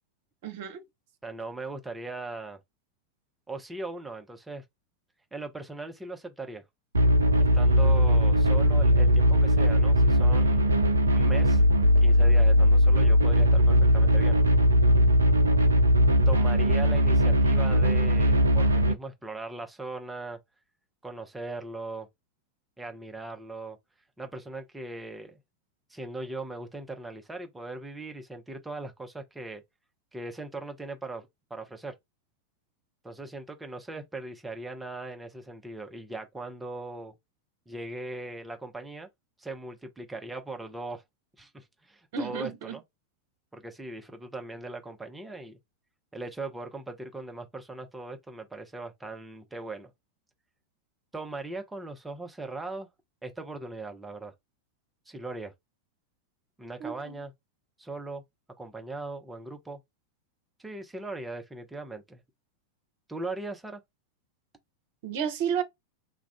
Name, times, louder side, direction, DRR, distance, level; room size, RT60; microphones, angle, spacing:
voice 1, 0.4-0.8 15.4-15.6 42.1-42.8 56.8-57.2 65.0-65.6, right 7 dB, 50° right, 0.8 m, -32 dB
voice 2, 1.2-2.6 3.5-4.6 5.3-6.6 7.4-10.8 11.1-11.6 12.0-14.4 16.3-20.4 21.0-22.1 22.8-23.8 24.2-25.4 25.9-29.6 30.1-31.9 33.0-37.1 37.7-39.1 39.4-41.0 41.4-42.8 43.5-45.6 46.1-49.9 51.1-52.9 53.2-54.3 55.1-55.5 56.6-57.3 57.8-58.2 58.6-59.8 60.6-62.2 63.1-63.8, right 2 dB, 10° right, 0.7 m, -39 dB
sound 1, 6.9-18.9, equal, 75° right, 0.4 m, -20 dB
2.4 x 2.2 x 3.4 m
figure-of-eight pair, 90°, 0 cm